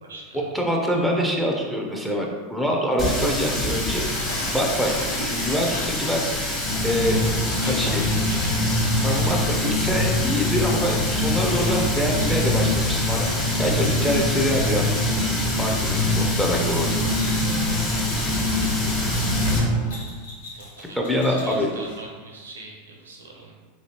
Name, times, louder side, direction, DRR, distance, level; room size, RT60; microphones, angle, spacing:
voice 1, 0.0-0.4 7.6-8.5 15.9-16.2 20.6-23.5, right 2 dB, 85° right, -1 dB, 0.6 m, -40 dB
voice 2, 0.5-4.1 4.5-6.3 6.8-7.2 7.6-8.1 9.0-13.3 13.6-15.0 15.5-16.9 21.1-21.7, equal, ahead, -1 dB, 0.5 m, -25 dB
Water tap faucet, 3.0-19.6, left 1 dB, 30° left, 1.3 m, -28 dB
sound 1, 3.9-22.0, equal, 80° left, 0.7 m, -41 dB
sound 2, 6.6-19.8, left 1 dB, 50° left, 0.9 m, -24 dB
3.0 x 2.7 x 2.9 m, 1.4 s
hypercardioid pair, 90°, 0 cm